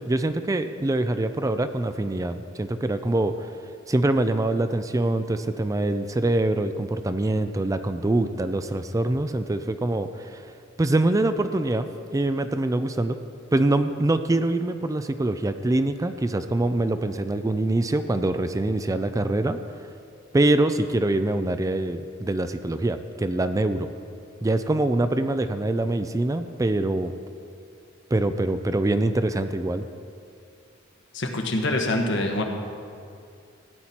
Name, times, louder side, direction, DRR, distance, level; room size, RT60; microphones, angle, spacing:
voice 1, 0.0-3.5 3.9-10.4 10.8-13.2 13.5-19.6 20.3-23.9 24.4-27.1 28.1-29.8, right 2 dB, 15° right, 10 dB, 0.4 m, -24 dB
voice 2, 31.1-32.4, left 1 dB, 65° left, 3 dB, 1.3 m, -25 dB
15.5 x 9.8 x 4.4 m, 2.4 s
head